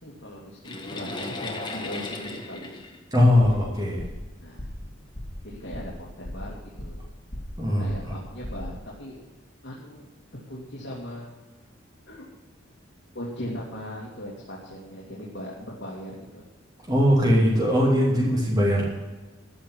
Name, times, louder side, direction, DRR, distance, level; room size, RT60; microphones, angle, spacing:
voice 1, 0.0-2.7 4.4-4.7 5.4-7.1 7.7-9.2 9.6-10.0 10.3-11.3 12.1-12.3 13.1-16.4, equal, 60° left, -5 dB, 2.7 m, -39 dB
sound 1, 0.6-4.0 4.8-4.9 5.5-5.7, left 2 dB, 20° left, 1.5 m, -36 dB
voice 2, 3.1-4.0 7.6-8.1 16.9-18.8, left 1 dB, 20° right, -5 dB, 2.9 m, -20 dB
sound 2, 3.7-3.8 4.0-4.3 4.6-4.9 5.1-5.4 5.7-6.0 6.2-7.1 7.3-7.6 7.9-8.2 8.4-8.7, left 1 dB, 40° left, 3.3 m, -36 dB
14.5 x 5.9 x 9.4 m, 1.2 s
head